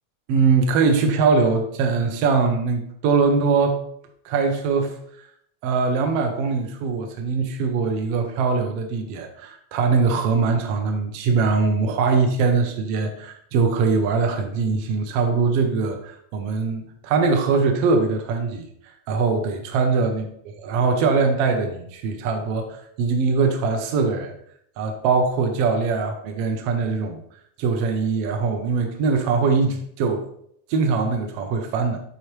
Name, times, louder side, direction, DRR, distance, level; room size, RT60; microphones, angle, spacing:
voice 1, 0.3-3.8 4.2-5.0 5.6-18.7 19.1-20.2 20.6-24.3 24.8-27.2 27.6-30.3 30.7-32.0, right 4 dB, 70° right, 4 dB, 1.5 m, -22 dB
8.1 x 4.3 x 3.1 m, 0.68 s
omnidirectional pair, 3.3 m